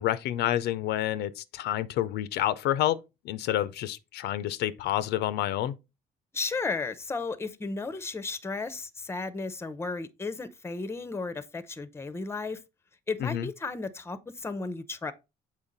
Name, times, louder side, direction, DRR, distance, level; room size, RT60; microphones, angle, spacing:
voice 1, 0.0-3.0 3.2-5.8 13.2-13.5, left 13 dB, 75° left, 0.5 m, -28 dB
voice 2, 6.3-12.6 13.1-15.1, left 3 dB, 15° left, 0.6 m, -34 dB
7.2 x 4.6 x 3.9 m
cardioid pair, 110°, 17 cm